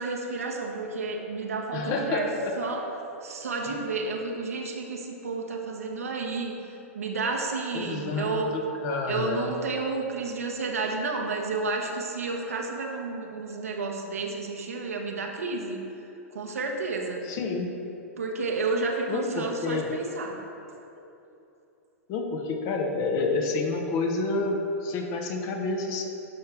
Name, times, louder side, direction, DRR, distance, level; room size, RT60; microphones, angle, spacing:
voice 1, 0.0-2.3 2.6-2.8 3.2-6.5 6.9-8.5 9.1-15.8 16.3-17.2 18.2-20.4, right 3 dB, 75° right, 1 dB, 1.2 m, -31 dB
voice 2, 1.7-2.5 7.7-9.5 17.2-17.7 19.1-19.9 22.1-26.0, left 3 dB, 40° left, 3 dB, 1.1 m, -29 dB
11.0 x 5.7 x 3.4 m, 2.9 s
figure-of-eight pair, 105°, 8 cm